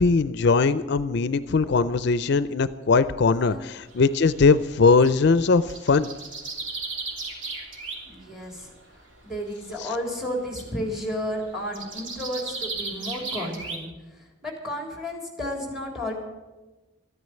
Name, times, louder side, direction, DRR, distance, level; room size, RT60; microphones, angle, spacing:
voice 1, 0.0-6.1 9.8-9.9, left 4 dB, 60° left, 14 dB, 0.5 m, -20 dB
sound 1, 3.8-5.2 5.5-8.2 8.5-8.9 9.6-10.0 10.3-13.8, right 3 dB, 75° right, 2.9 m, -35 dB
voice 2, 8.1-8.7 9.2-16.1, equal, ahead, 2 dB, 3.6 m, -32 dB
13.5 x 9.6 x 9.2 m, 1.2 s
head